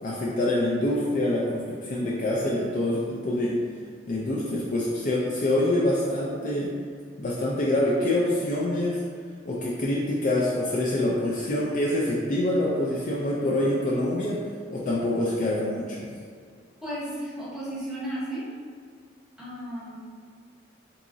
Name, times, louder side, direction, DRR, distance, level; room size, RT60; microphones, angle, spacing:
voice 1, 0.0-3.6 4.1-6.7 7.2-9.0 9.4-16.1, left 1 dB, 45° left, -5 dB, 0.4 m, -26 dB
voice 2, 16.8-18.5 19.4-20.1, right 1 dB, 5° right, -8 dB, 0.8 m, -34 dB
3.7 x 2.9 x 2.5 m, 2.1 s
head